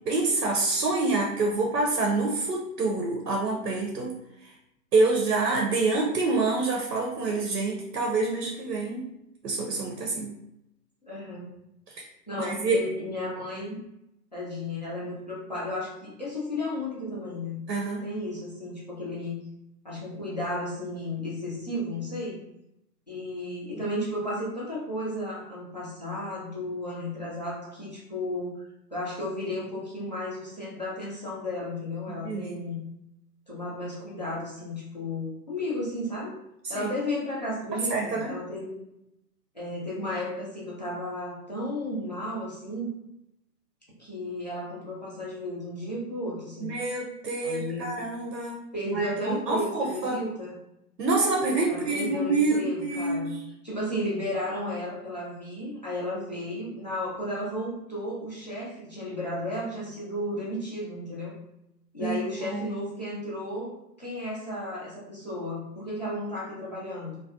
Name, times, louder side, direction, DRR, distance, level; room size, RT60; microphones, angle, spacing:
voice 1, 0.1-4.1 4.9-9.0 9.4-10.3 11.9-12.0 12.4-12.8 17.7-18.1 32.1-32.6 36.6-36.9 37.9-38.3 46.6-48.6 48.9-50.2 51.0-53.4 62.0-62.2 62.4-62.6, right 3 dB, 85° right, 0 dB, 0.7 m, -27 dB
voice 2, 11.1-11.6 12.0-13.8 14.3-17.6 18.0-19.4 19.8-22.4 23.1-32.8 33.5-36.4 36.7-38.7 39.5-43.0 44.0-46.7 47.4-47.9 48.7-50.5 51.7-61.4 61.9-67.2, left 1 dB, 30° left, -7 dB, 0.3 m, -33 dB
2.5 x 2.1 x 2.3 m, 0.84 s
figure-of-eight pair, 130°, 49 cm